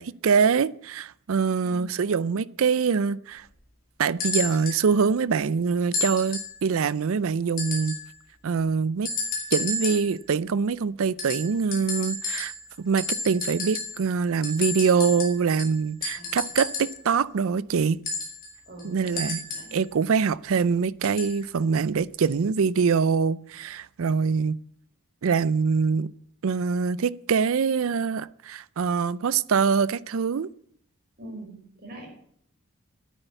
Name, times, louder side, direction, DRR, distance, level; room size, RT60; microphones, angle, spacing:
voice 1, 0.0-3.4 4.0-8.0 8.4-9.1 9.5-12.5 12.8-18.0 18.8-19.4 19.7-24.6 25.2-26.1 26.4-30.5, right 5 dB, 70° right, 0.4 m, -24 dB
voice 2, 1.6-2.0 16.2-16.4 18.7-19.7 31.2-32.1, right 1 dB, 45° right, 5.6 m, -43 dB
sound 1, 4.2-4.8 5.9-6.6 7.6-8.1 9.1-10.2 11.2-12.7 13.0-14.1 14.4-17.0 18.1-19.8 21.0-21.4 22.3-22.4, left 3 dB, 40° left, 3.4 m, -32 dB
9.9 x 9.0 x 8.2 m
head